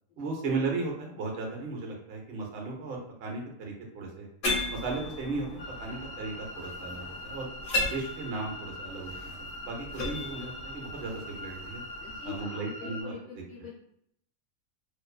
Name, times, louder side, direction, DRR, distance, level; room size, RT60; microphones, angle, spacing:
voice 1, 0.2-4.3 4.7-7.5 7.8-11.8 12.2-13.1, right 3 dB, 55° right, 0 dB, 0.7 m, -36 dB
sound 1, 4.4-12.4, left 2 dB, 70° left, 1.0 m, -37 dB
sound 2, 5.6-13.0, left 1 dB, 10° left, 0.7 m, -43 dB
voice 2, 12.0-13.7, left 7 dB, 50° left, -4 dB, 0.6 m, -45 dB
2.5 x 2.3 x 2.3 m, 0.73 s
omnidirectional pair, 1.5 m